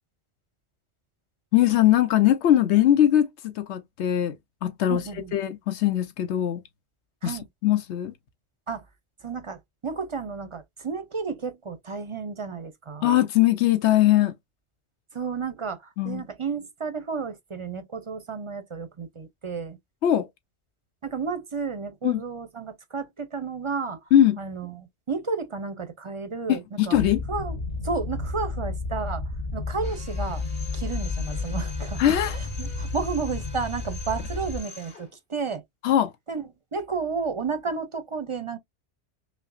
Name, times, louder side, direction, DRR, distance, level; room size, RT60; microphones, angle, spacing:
voice 1, 1.5-4.3 4.6-5.0 5.3-6.6 7.2-8.1 13.0-14.3 16.0-16.2 20.0-20.3 22.0-22.2 24.1-24.4 26.5-27.2 32.0-32.4 35.8-36.1, left 12 dB, 85° left, 1.0 m, -21 dB
voice 2, 4.9-5.3 7.2-7.4 8.7-8.8 9.2-13.1 15.1-19.8 21.0-24.0 24.4-27.0 27.3-27.6 27.8-29.2 29.5-30.4 30.7-32.0 32.3-35.6 36.3-36.4 36.7-38.6, right 5 dB, 40° right, 0.5 m, -32 dB
sound 1, 26.9-34.6, left 3 dB, 45° left, 0.8 m, -32 dB
Drill, 29.8-35.1, left 3 dB, 60° left, 2.2 m, -45 dB
5.6 x 2.1 x 2.4 m
omnidirectional pair, 1.1 m